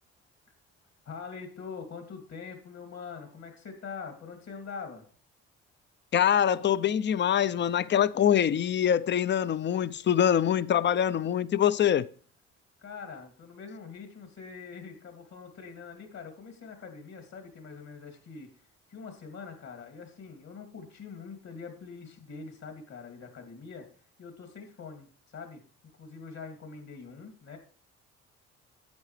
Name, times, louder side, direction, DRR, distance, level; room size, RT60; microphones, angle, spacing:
voice 1, 1.1-5.0 12.8-23.9 24.2-25.6 26.0-27.6, left 5 dB, 60° left, 2.6 m, -44 dB
voice 2, 6.1-12.1, left 9 dB, 40° left, 0.5 m, -24 dB
10.5 x 8.0 x 3.3 m
supercardioid pair, 65°, 30 cm